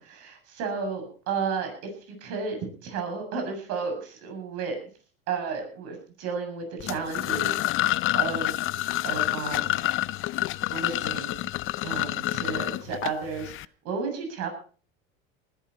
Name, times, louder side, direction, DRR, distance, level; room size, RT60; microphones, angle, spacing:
voice 1, 0.0-4.8 5.3-7.8 8.1-8.7 9.0-9.9 10.7-11.5 11.8-13.5 13.8-14.5, right 5 dB, 60° right, 4 dB, 7.7 m, -33 dB
sound 1, 6.8-13.7, left 15 dB, 45° left, 0.6 m, -28 dB
19.5 x 13.0 x 4.4 m, 0.41 s
hypercardioid pair, 95°, 29 cm